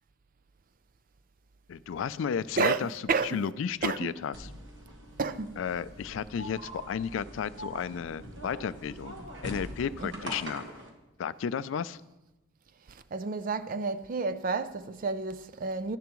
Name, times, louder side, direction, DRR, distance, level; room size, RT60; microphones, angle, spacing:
voice 1, 1.7-3.0 3.3-4.5 5.6-9.2 9.4-10.6 11.2-12.0, left 7 dB, 70° left, 0.3 m, -33 dB
voice 2, 2.6-3.4 3.8-4.1 5.2-5.5 10.0-10.1 12.9-16.0, right 4 dB, 45° right, 0.4 m, -31 dB
sound 1, 4.3-10.9, right 1 dB, 65° right, 1.6 m, -43 dB
12.5 x 10.5 x 3.0 m
head